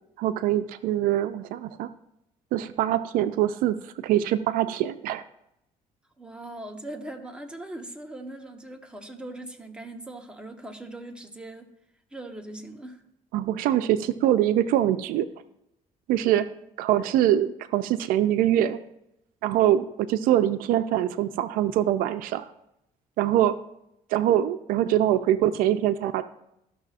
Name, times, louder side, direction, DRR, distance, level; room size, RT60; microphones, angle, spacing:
voice 1, 0.2-1.9 2.5-5.2 13.3-15.3 16.1-16.5 16.8-18.8 19.4-22.5 23.2-23.6 24.1-26.2, right 12 dB, 90° right, 12 dB, 0.4 m, -23 dB
voice 2, 6.2-11.7 12.1-13.0, right 1 dB, 5° right, 3 dB, 1.0 m, -40 dB
13.5 x 6.1 x 2.5 m, 0.82 s
cardioid pair, 110°, 14 cm